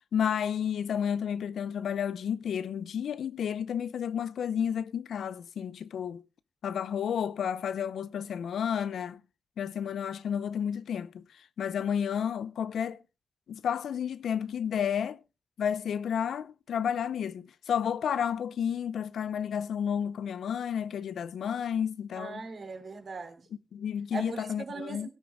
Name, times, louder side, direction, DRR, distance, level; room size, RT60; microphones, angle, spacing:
voice 1, 0.1-6.3 6.6-9.2 9.6-11.2 11.6-13.0 13.5-15.2 15.6-22.5 23.7-25.1, left 8 dB, 85° left, 0.5 m, -31 dB
voice 2, 22.2-23.4 24.1-25.1, right 4 dB, 60° right, 3.1 m, -39 dB
17.5 x 10.0 x 3.6 m
cardioid pair, 50°, 0 cm